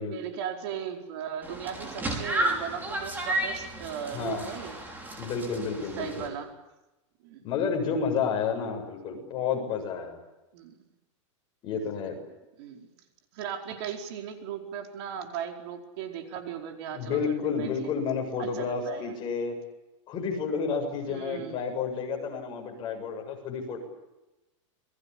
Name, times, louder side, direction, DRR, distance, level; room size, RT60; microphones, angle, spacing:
voice 1, 0.0-4.8 5.8-6.5 7.2-7.4 10.5-10.8 12.6-12.9 13.3-17.9 18.4-19.1 21.1-21.6, right 8 dB, 50° right, 4 dB, 4.7 m, -37 dB
sound 1, 1.4-6.3, right 1 dB, 10° right, 5.7 m, -32 dB
voice 2, 4.1-4.5 5.2-6.3 7.4-10.2 11.6-12.2 16.9-19.5 20.1-23.8, left 5 dB, 30° left, 2 dB, 7.5 m, -30 dB
29.0 x 22.5 x 8.7 m, 1.0 s
supercardioid pair, 160°, 17 cm